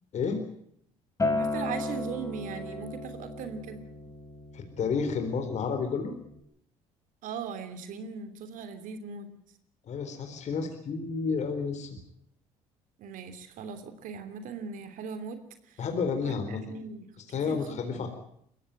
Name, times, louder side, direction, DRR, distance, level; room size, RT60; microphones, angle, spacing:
Acoustic guitar, 1.2-6.4, left 2 dB, 20° left, 5.1 m, -35 dB
voice 1, 1.4-3.8 7.2-9.3 13.0-15.4 15.7-15.8 16.2-17.6 17.8-18.1, right 6 dB, 65° right, 9 dB, 2.9 m, -39 dB
voice 2, 4.5-6.1 9.9-11.9 15.8-16.6 17.3-18.1, left 5 dB, 55° left, 6 dB, 4.1 m, -30 dB
21.5 x 16.5 x 9.0 m, 0.69 s
supercardioid pair, 70°, 15 cm